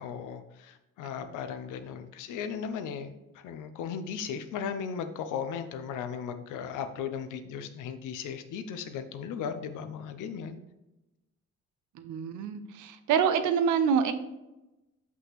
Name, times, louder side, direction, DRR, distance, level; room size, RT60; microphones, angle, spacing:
voice 1, 0.0-10.6, left 7 dB, 90° left, 9 dB, 0.8 m, -36 dB
voice 2, 11.9-14.1, right 7 dB, 80° right, 10 dB, 0.8 m, -26 dB
6.0 x 5.7 x 3.2 m, 0.99 s
cardioid pair, 90°, 30 cm